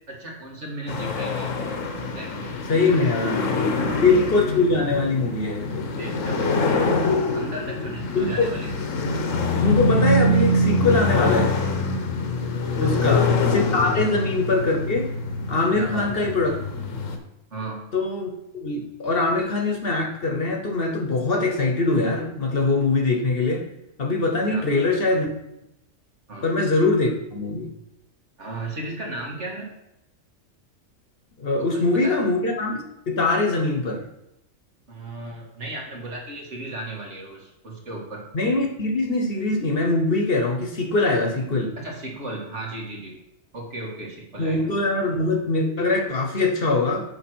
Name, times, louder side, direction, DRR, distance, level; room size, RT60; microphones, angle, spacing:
voice 1, 0.1-1.6 2.1-3.2 3.7-4.1 6.0-6.9 7.3-8.8 12.8-13.4 14.0-14.1 15.7-16.3 17.5-17.8 24.5-25.1 26.3-26.5 28.4-29.7 31.6-32.2 34.9-38.2 41.8-43.2 43.5-44.6, right 2 dB, 60° right, -1 dB, 2.2 m, -35 dB
sound 1, 0.9-17.2, left 2 dB, 80° left, 1.3 m, -24 dB
voice 2, 2.7-3.4 4.0-5.9 8.1-8.5 9.6-11.5 12.7-15.1 15.5-16.6 17.9-23.6 24.0-25.3 26.4-27.7 31.4-34.0 38.3-41.7 44.4-47.0, left 3 dB, 50° left, 2 dB, 1.1 m, -22 dB
7.1 x 5.0 x 6.1 m, 0.85 s
omnidirectional pair, 1.3 m